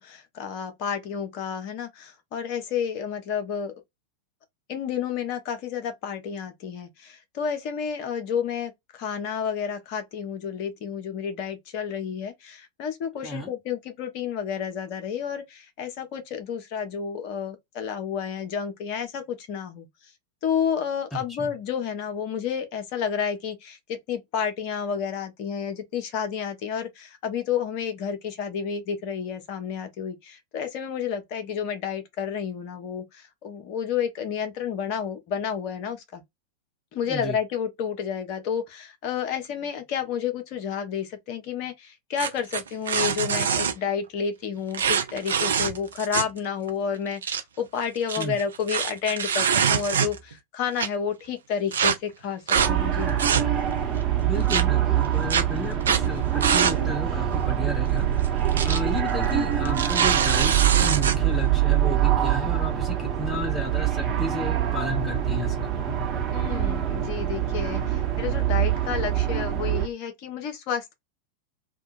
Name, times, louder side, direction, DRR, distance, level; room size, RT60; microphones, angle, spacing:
voice 1, 0.0-3.7 4.7-20.1 20.4-36.2 36.9-53.2 66.3-70.9, left 7 dB, 45° left, 0.9 m, -30 dB
voice 2, 21.1-21.5 37.1-37.4 48.2-48.4 54.2-58.1 58.6-65.7, equal, 10° left, 0.6 m, -33 dB
sound 1, 42.2-43.7 44.7-46.4 46.7-46.8 47.1-47.4 48.0-50.3 50.8-50.9 51.7-51.9 52.5-52.7 53.1-53.7 54.5-54.6 55.3-55.4 55.8-56.0 56.4-56.8 57.1-57.2 58.2-58.8 59.1-59.3 59.7-61.2, right 7 dB, 65° right, 0.5 m, -24 dB
sound 2, 52.6-69.9, right 10 dB, 30° right, 1.0 m, -24 dB
2.8 x 2.3 x 2.6 m
figure-of-eight pair, 90°, 0 cm